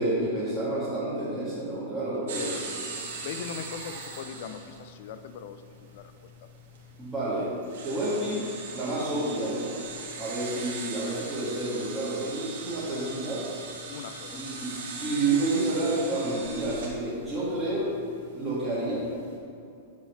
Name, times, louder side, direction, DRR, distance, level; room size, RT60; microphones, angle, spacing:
voice 1, 0.0-2.5 7.0-7.5 7.8-8.5 8.7-9.7 10.2-13.4 14.3-14.7 15.0-17.9 18.3-19.1, right 2 dB, 5° right, -12 dB, 2.2 m, -29 dB
sound 1, 2.3-19.4, right 4 dB, 80° right, 2.0 m, -41 dB
voice 2, 3.2-6.1 13.9-14.6, left 7 dB, 55° left, 10 dB, 0.6 m, -40 dB
9.3 x 4.9 x 5.7 m, 2.6 s
supercardioid pair, 155°, 0 cm